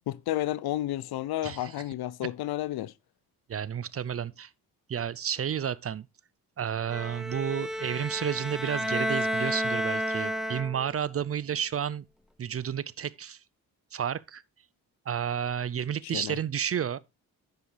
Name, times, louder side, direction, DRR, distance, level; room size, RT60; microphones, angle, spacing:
voice 1, 0.1-2.9 16.0-16.4, left 14 dB, 65° left, 0.6 m, -31 dB
voice 2, 1.4-1.7 3.5-4.5 4.9-6.1 6.6-12.0 12.4-13.4 13.9-14.4 15.1-17.0, right 8 dB, 35° right, 0.5 m, -31 dB
Bowed string instrument, 6.9-11.1, equal, ahead, 1.0 m, -31 dB
10.0 x 8.1 x 3.3 m
supercardioid pair, 50°, 41 cm